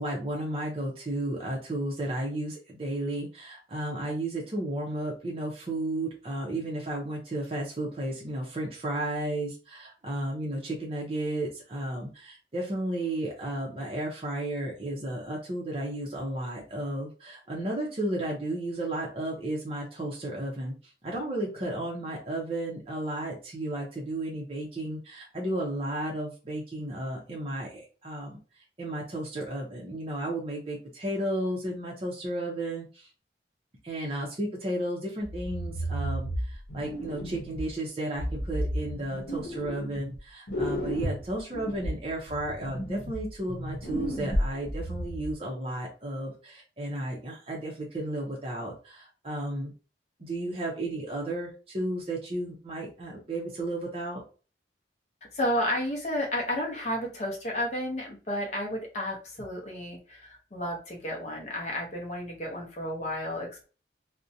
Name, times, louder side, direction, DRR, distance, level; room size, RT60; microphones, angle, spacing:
voice 1, 0.0-28.4 28.8-33.1 33.8-49.7 50.2-54.2, right 1 dB, 30° right, -3 dB, 0.5 m, -33 dB
sound 1, 35.2-37.7 38.2-40.2 40.5-45.3, equal, 80° left, 0.8 m, -33 dB
voice 2, 55.3-63.6, left 1 dB, 40° left, 0 dB, 0.6 m, -32 dB
2.5 x 2.1 x 2.6 m, 0.35 s
head